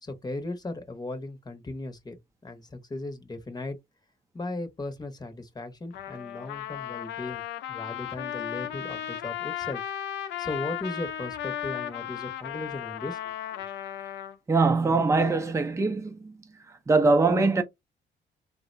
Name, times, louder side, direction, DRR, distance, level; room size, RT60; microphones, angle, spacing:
voice 1, 0.0-2.2 2.4-3.8 4.3-7.4 7.7-9.8 10.2-13.2, left 2 dB, 20° left, 0.8 m, -37 dB
Trumpet, 5.9-14.4, left 11 dB, 75° left, 0.4 m, -35 dB
voice 2, 14.5-16.3 16.9-17.6, right 3 dB, 15° right, 0.5 m, -22 dB
3.6 x 2.1 x 2.5 m
cardioid pair, 95°, 19 cm